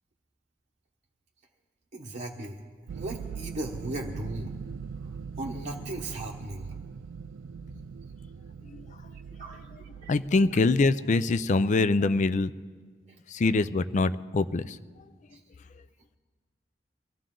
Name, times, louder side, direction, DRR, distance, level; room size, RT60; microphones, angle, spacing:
voice 1, 1.9-2.6 2.9-4.5 5.4-6.6 9.4-9.7 10.0-10.1, right 1 dB, 40° right, -2 dB, 1.2 m, -36 dB
sound 1, 2.9-11.0, right 6 dB, 85° right, 0.4 m, -41 dB
voice 2, 8.6-9.0 9.4-12.5 13.3-14.8, left 3 dB, 40° left, 14 dB, 0.4 m, -25 dB
24.0 x 15.0 x 3.8 m, 1.5 s
head